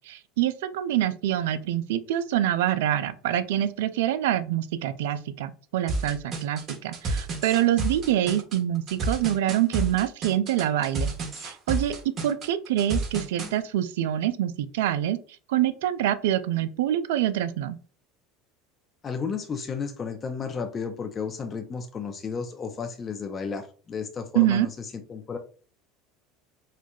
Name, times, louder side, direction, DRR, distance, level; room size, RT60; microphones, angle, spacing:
voice 1, 0.1-11.1 11.4-11.9 12.2-15.2 15.5-17.8 24.3-24.7, right 12 dB, 75° right, 12 dB, 0.4 m, -25 dB
sound 1, 5.9-13.5, right 2 dB, 45° right, 1.3 m, -30 dB
voice 2, 19.0-25.4, left 5 dB, 30° left, 6 dB, 0.5 m, -33 dB
4.3 x 2.3 x 2.3 m, 0.39 s
hypercardioid pair, 85°, 0 cm